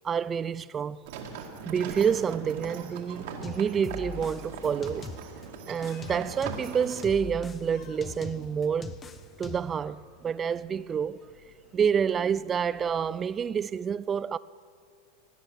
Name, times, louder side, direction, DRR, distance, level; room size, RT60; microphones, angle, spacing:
voice 1, 0.0-1.0 1.7-5.1 5.7-9.0 9.4-11.3 11.7-14.4, right 7 dB, 25° right, 0.4 m, -28 dB
sound 1, 1.0-7.0, right 5 dB, 65° right, 2.1 m, -40 dB
sound 2, 3.4-5.5 5.8-9.8, left 5 dB, 25° left, 1.2 m, -42 dB
sound 3, 5.3-13.5, left 4 dB, 60° left, 2.8 m, -57 dB
17.5 x 10.5 x 6.4 m
hypercardioid pair, 95°, 0 cm